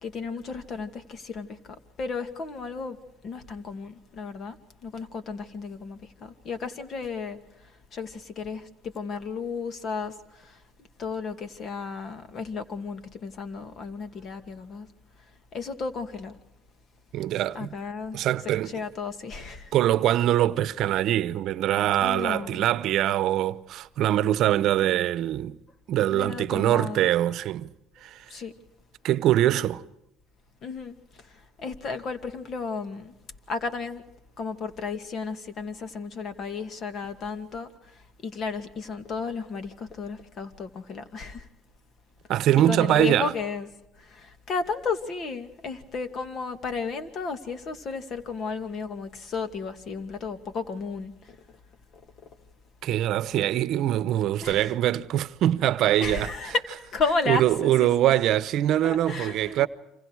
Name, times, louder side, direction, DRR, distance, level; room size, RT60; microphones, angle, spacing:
voice 1, 0.0-1.6 2.0-3.0 3.2-4.6 4.8-7.4 7.9-10.6 11.0-14.9 15.5-16.4 17.5-18.2 18.7-19.8 21.8-22.6 26.1-27.1 28.3-28.5 30.6-30.9 31.2-31.3 31.6-33.1 33.5-34.0 34.4-41.5 42.7-43.7 44.0-51.4 54.4-54.7 56.0-56.6 56.9-58.1 58.8-59.7, left 4 dB, 50° left, 2.4 m, -33 dB
voice 2, 17.1-17.7 18.1-18.7 19.7-25.6 25.9-27.7 28.0-28.2 29.0-29.8 42.3-43.3 52.8-56.5 57.3-59.7, right 12 dB, 65° right, 0.9 m, -23 dB
29.0 x 26.0 x 4.8 m
supercardioid pair, 90°, 0 cm